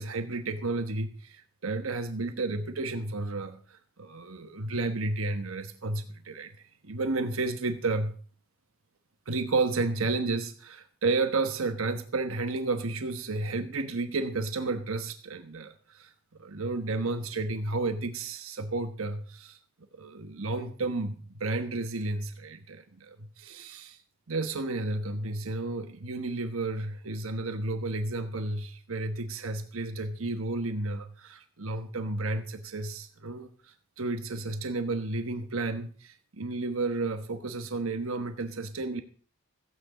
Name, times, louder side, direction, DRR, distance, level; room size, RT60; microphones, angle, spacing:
voice 1, 0.0-6.6 6.8-8.2 9.3-16.1 16.4-19.6 19.9-24.0 24.3-39.0, right 3 dB, 85° right, 8 dB, 1.2 m, -32 dB
15.5 x 8.7 x 5.0 m, 0.41 s
head